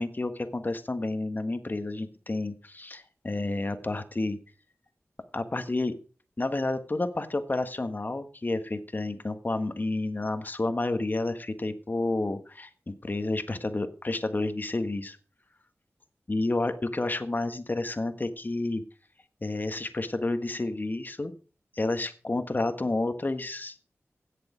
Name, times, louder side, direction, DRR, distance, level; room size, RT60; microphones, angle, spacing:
voice 1, 0.0-4.4 5.3-6.0 6.4-15.2 16.3-18.8 19.4-21.3 21.7-23.8, left 2 dB, 40° left, 9 dB, 1.5 m, -30 dB
16.5 x 6.7 x 5.0 m, 0.37 s
wide cardioid pair, 75°, 5 cm